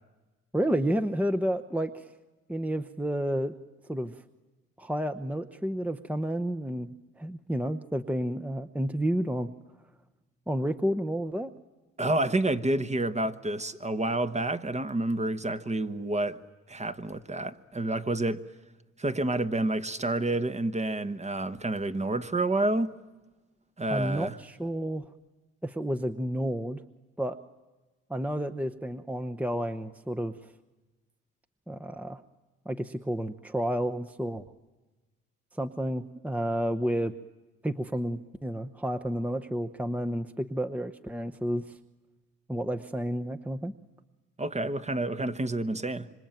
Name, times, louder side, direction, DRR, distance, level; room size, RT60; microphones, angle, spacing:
voice 1, 0.5-2.1 2.5-3.5 3.9-4.2 4.8-9.5 10.5-11.5 23.9-25.0 25.6-26.8 27.2-27.4 28.1-30.4 31.7-32.2 32.7-34.4 35.5-37.1 37.6-41.8 42.5-43.7, equal, 5° right, 0.9 m, -30 dB
voice 2, 12.0-16.4 16.7-18.4 19.0-23.0 23.8-24.4 44.4-46.1, right 2 dB, 20° right, 1.2 m, -29 dB
26.0 x 25.5 x 9.1 m
cardioid pair, 90°, 30 cm